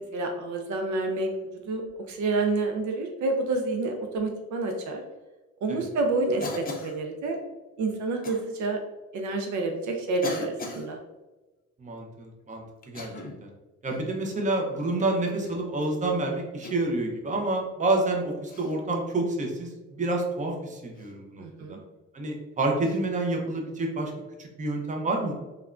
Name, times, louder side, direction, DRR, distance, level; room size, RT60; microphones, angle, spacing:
voice 1, 0.1-5.0 5.6-7.4 7.8-8.8 9.1-11.0 21.4-21.8, right 3 dB, 70° right, 3 dB, 0.5 m, -28 dB
Cough, 6.4-7.0 8.2-8.4 9.3-9.4 10.2-10.9 12.8-13.4 13.9-14.1 15.2-15.6 16.6-17.0 18.5-18.7 20.9-21.1 22.8-23.0, left 3 dB, 30° left, 0.5 m, -38 dB
voice 2, 11.8-13.1 13.4-13.5 13.8-21.8 22.1-24.1 24.4-25.3, right 2 dB, 25° right, 1 dB, 0.6 m, -28 dB
3.4 x 2.2 x 2.4 m, 1.1 s
cardioid pair, 90°, 30 cm